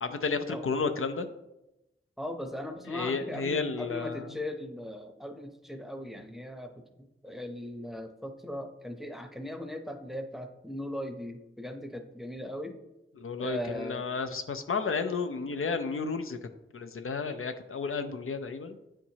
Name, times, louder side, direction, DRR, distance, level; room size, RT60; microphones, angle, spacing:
voice 1, 0.0-1.3 2.9-4.2 13.2-16.4 16.7-18.8, left 4 dB, 80° left, 7 dB, 0.5 m, -32 dB
voice 2, 2.2-12.8 13.4-14.0 18.0-18.1, left 1 dB, ahead, 5 dB, 0.7 m, -39 dB
8.7 x 4.5 x 2.8 m, 0.94 s
wide cardioid pair, 65°, 21 cm